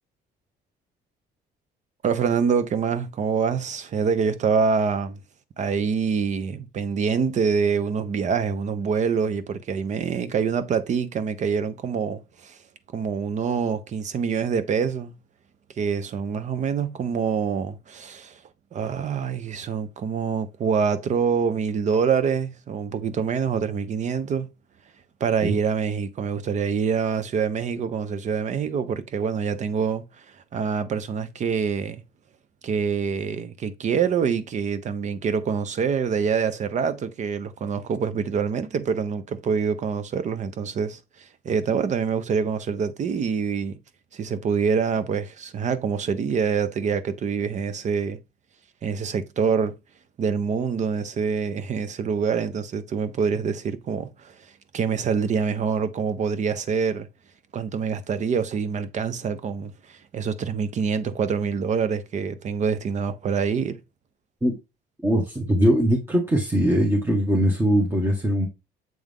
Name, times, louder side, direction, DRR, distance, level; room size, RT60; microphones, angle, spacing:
voice 1, 2.0-5.2 5.6-12.6 12.9-15.1 15.8-18.4 18.7-24.5 25.2-30.2 30.5-32.0 32.6-43.8 44.1-48.2 48.8-49.8 50.2-54.5 54.7-57.1 57.5-63.8, right 6 dB, 45° right, 0.9 m, -25 dB
voice 2, 65.0-68.5, equal, 15° right, 1.4 m, -21 dB
7.8 x 3.6 x 3.6 m
cardioid pair, 110°, 17 cm